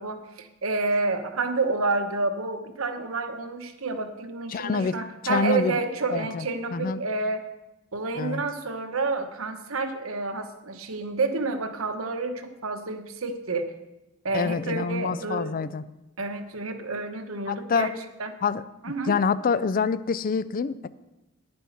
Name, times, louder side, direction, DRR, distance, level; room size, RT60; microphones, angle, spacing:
voice 1, 0.0-7.4 7.9-13.7 14.2-15.5 16.2-17.9 18.2-18.3 18.8-19.1, right 3 dB, 65° right, 8 dB, 1.0 m, -29 dB
voice 2, 4.5-5.0 5.2-5.8 6.1-7.0 8.2-8.4 14.3-15.8 17.5-17.9 18.4-18.6 19.0-20.9, left 5 dB, 40° left, 16 dB, 0.4 m, -26 dB
9.8 x 9.5 x 5.7 m, 0.97 s
head